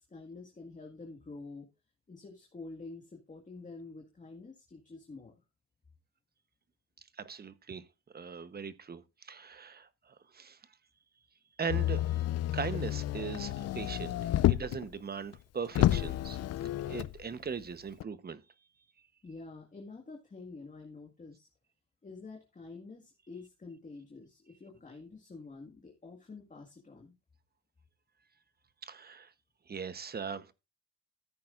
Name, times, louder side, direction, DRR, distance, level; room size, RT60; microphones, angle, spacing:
voice 1, 0.0-1.7 2.1-5.3 19.2-21.5 22.0-27.1, left 3 dB, 25° left, 1.8 m, -48 dB
voice 2, 7.2-7.8 8.1-10.6 11.6-12.3 12.5-16.4 16.8-18.4 28.8-29.3 29.7-30.5, right 6 dB, 30° right, 1.0 m, -40 dB
Motor vehicle (road), 11.7-14.8 15.3-15.4 15.7-17.2 18.0-18.1, left 13 dB, 55° left, 0.5 m, -30 dB
14.5 x 8.6 x 2.5 m
cardioid pair, 90°, 30 cm